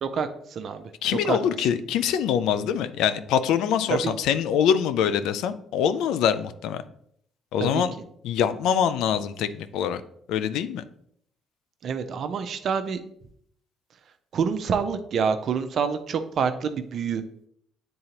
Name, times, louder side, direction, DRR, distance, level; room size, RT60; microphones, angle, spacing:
voice 1, 0.0-0.9 1.3-1.4 3.9-4.1 7.6-7.8 11.8-13.0 14.3-17.2, right 6 dB, 60° right, 8 dB, 0.5 m, -27 dB
voice 2, 1.0-6.8 7.5-7.9 8.2-10.0 10.3-10.8, left 8 dB, 80° left, 12 dB, 0.4 m, -24 dB
8.6 x 3.8 x 2.9 m, 0.69 s
supercardioid pair, 65°, 0 cm